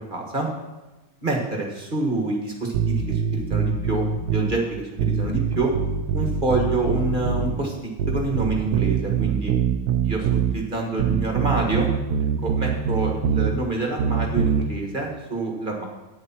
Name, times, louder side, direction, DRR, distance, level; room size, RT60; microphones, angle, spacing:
voice 1, 0.1-0.5 1.2-4.0 4.3-5.7 6.1-7.8 8.1-9.5 10.0-11.9 12.4-15.8, right 2 dB, 35° right, 0 dB, 1.8 m, -27 dB
sound 1, 2.7-4.5 5.0-7.6 8.0-10.6 11.0-13.5 14.0-14.6, right 7 dB, 90° right, 1.2 m, -23 dB
11.0 x 9.4 x 4.5 m, 1.1 s
omnidirectional pair, 1.6 m